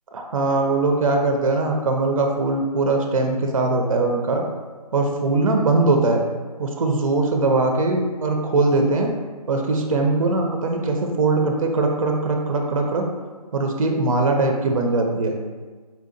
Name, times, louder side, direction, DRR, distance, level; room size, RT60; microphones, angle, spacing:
voice 1, 0.1-4.4 4.9-6.2 6.6-9.1 9.5-13.1 13.5-15.4, right 3 dB, 55° right, 3 dB, 0.5 m, -21 dB
4.4 x 2.7 x 2.5 m, 1.4 s
figure-of-eight pair, 155°, 21 cm